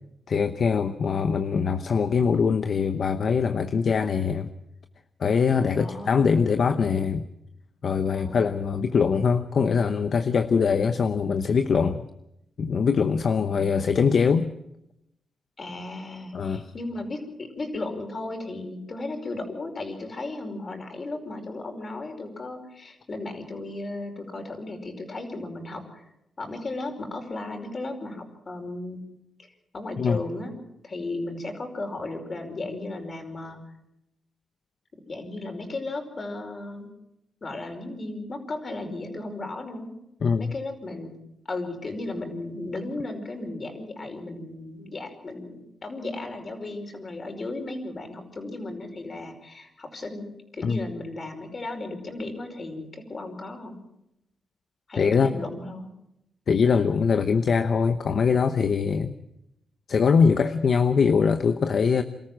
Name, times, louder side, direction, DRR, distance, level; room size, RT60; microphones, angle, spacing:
voice 1, 0.3-4.5 5.2-7.2 7.8-12.0 12.6-14.5 16.3-16.7 30.0-30.2 40.2-40.5 50.6-50.8 55.0-55.3 56.5-59.1 59.9-62.0, left 5 dB, 60° left, 9 dB, 0.9 m, -22 dB
voice 2, 5.7-6.5 8.1-8.5 13.3-13.7 15.6-26.1 26.4-29.0 29.4-29.5 29.7-30.5 30.8-33.6 34.9-36.9 37.4-39.9 40.4-41.2 41.5-53.8 54.9-55.9, left 2 dB, 40° left, 5 dB, 5.2 m, -35 dB
26.5 x 14.0 x 7.6 m, 0.84 s
cardioid pair, 80°, 0 cm